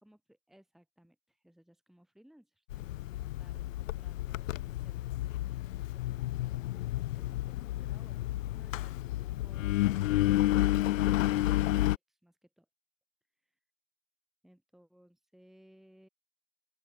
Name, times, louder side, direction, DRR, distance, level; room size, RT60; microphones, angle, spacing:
voice 1, 0.0-12.7 14.4-16.1, equal, ahead, 4.0 m, -62 dB
Engine, 2.7-12.0, left 15 dB, 60° left, 0.6 m, -31 dB
open air
hypercardioid pair, 140°, 45 cm